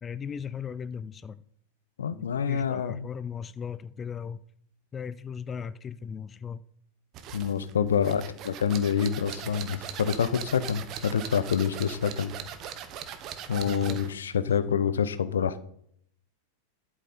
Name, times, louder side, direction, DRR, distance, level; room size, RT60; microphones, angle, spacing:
voice 1, 0.0-1.4 2.1-4.4 4.9-6.6 8.0-8.1 13.6-14.0, left 7 dB, 20° left, 0.4 m, -37 dB
voice 2, 2.0-3.1 7.3-12.3 13.5-15.6, left 7 dB, 65° left, 0.7 m, -27 dB
sound 1, 7.1-14.2, right 9 dB, 35° right, 1.1 m, -40 dB
11.5 x 8.8 x 4.3 m
figure-of-eight pair, 90°, 0 cm